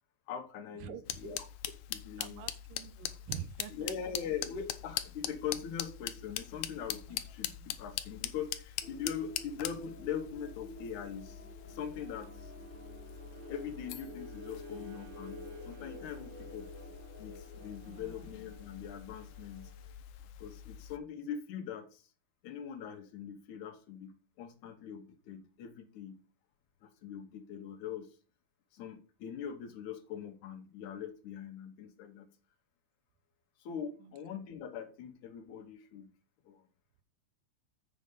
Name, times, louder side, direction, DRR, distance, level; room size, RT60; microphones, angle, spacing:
voice 1, 0.3-1.5 1.9-2.4 3.7-11.4 11.7-12.5 13.5-16.7 17.2-19.7 20.4-22.1 22.4-26.2 26.8-28.1 28.7-32.3 33.6-36.1 36.5-36.6, left 8 dB, 70° left, 2.4 m, -42 dB
voice 2, 0.8-1.4 2.2-3.9 7.1-7.2 7.5-7.8 17.8-18.3 34.0-34.1, right 10 dB, 90° right, 2.5 m, -47 dB
sound 1, 1.0-21.0, left 12 dB, 90° left, 2.4 m, -43 dB
sound 2, 8.8-17.8, left 1 dB, 5° left, 2.3 m, -51 dB
Bowed string instrument, 11.6-20.0, right 6 dB, 70° right, 1.7 m, -55 dB
7.9 x 6.2 x 5.3 m
omnidirectional pair, 3.7 m